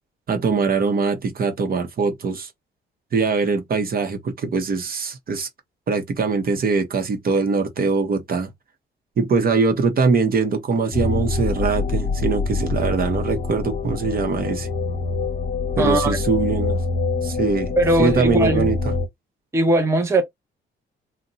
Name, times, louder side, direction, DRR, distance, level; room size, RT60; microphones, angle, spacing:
voice 1, 0.3-2.5 3.1-5.5 5.9-8.5 9.2-14.7 15.8-16.8 17.2-18.9, right 4 dB, 50° right, 0.9 m, -22 dB
sound 1, 10.9-19.1, left 4 dB, 40° left, 0.8 m, -25 dB
voice 2, 15.8-16.2 17.8-18.7 19.5-20.2, right 1 dB, 15° right, 0.6 m, -19 dB
2.7 x 2.2 x 3.9 m
cardioid pair, 90°, 20 cm